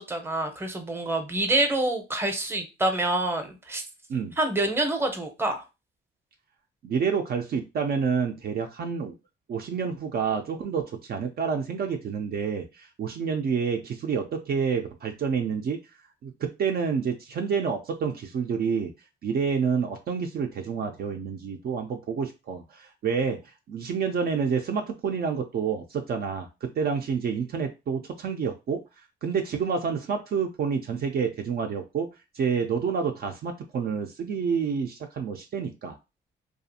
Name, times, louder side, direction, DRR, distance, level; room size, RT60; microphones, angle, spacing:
voice 1, 0.0-3.8 4.4-5.6, right 2 dB, 10° right, 6 dB, 0.7 m, -27 dB
voice 2, 6.8-9.1 9.5-15.8 16.2-18.9 19.2-23.4 23.7-28.8 29.2-32.1 32.3-36.0, right 6 dB, 50° right, 3 dB, 0.4 m, -28 dB
2.5 x 2.4 x 2.7 m, 0.26 s
cardioid pair, 90°, 20 cm